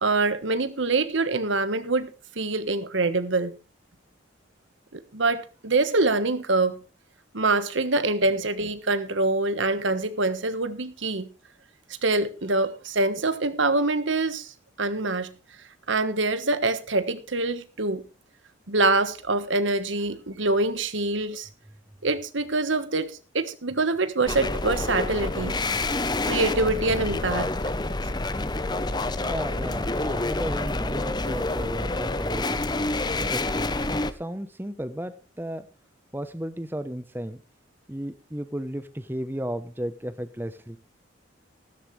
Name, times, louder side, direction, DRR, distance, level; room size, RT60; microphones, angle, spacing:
voice 1, 0.0-3.6 4.9-6.8 7.3-11.3 12.0-15.3 15.9-18.0 18.7-21.5 22.0-25.6 25.9-27.5, right 2 dB, 75° right, 1.4 m, -25 dB
sound 1, 24.3-34.1, left 2 dB, 20° left, 0.8 m, -28 dB
voice 2, 29.2-32.7 33.2-35.7 36.1-37.4 37.9-40.8, right 1 dB, 10° right, 0.8 m, -34 dB
15.0 x 13.5 x 3.3 m
head